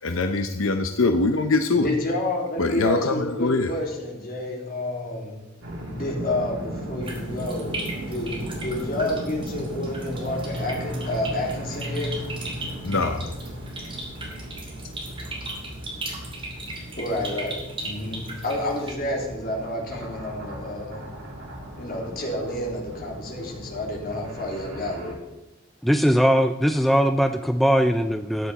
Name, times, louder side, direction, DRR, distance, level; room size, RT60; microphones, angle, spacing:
voice 1, 0.0-1.9 2.6-3.7 12.8-13.2, left 3 dB, 75° left, 7 dB, 0.7 m, -23 dB
voice 2, 1.7-5.4 5.9-12.1 17.0-21.1 21.8-25.2, left 1 dB, 45° left, -1 dB, 3.2 m, -29 dB
sound 1, 5.6-25.1, equal, 80° right, 2.8 m, -36 dB
sound 2, 7.0-18.9, right 2 dB, 25° right, 2.8 m, -38 dB
voice 3, 25.8-28.5, equal, ahead, 7 dB, 0.4 m, -20 dB
13.0 x 9.5 x 4.2 m, 1.0 s
head